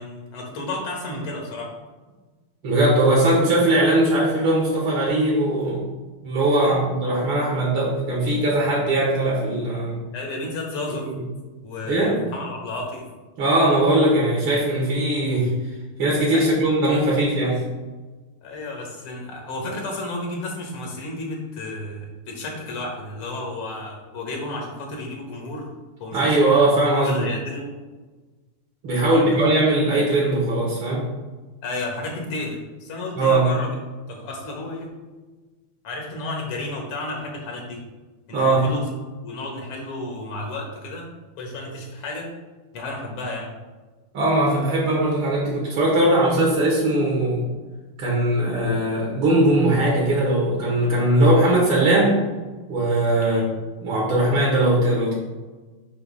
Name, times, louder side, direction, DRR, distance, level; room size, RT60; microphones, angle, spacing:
voice 1, 0.0-1.7 6.6-6.8 10.1-11.1 11.6-13.1 16.3-16.5 18.4-25.7 26.0-26.7 27.0-27.7 29.0-29.3 29.5-29.6 31.6-33.7 34.1-34.9 35.8-37.8 38.3-38.9 39.2-41.1 41.4-42.3 42.7-43.5 53.2-53.4, left 2 dB, 90° left, 0 dB, 2.2 m, -32 dB
voice 2, 2.6-5.9 6.2-10.0 11.9-12.2 13.4-15.5 16.0-17.6 26.1-27.2 28.8-31.1 33.2-33.5 38.3-38.7 44.1-47.4 48.0-52.2 52.7-53.4 53.8-55.1, right 1 dB, 75° right, -5 dB, 2.3 m, -20 dB
6.8 x 3.0 x 5.4 m, 1.3 s
omnidirectional pair, 2.3 m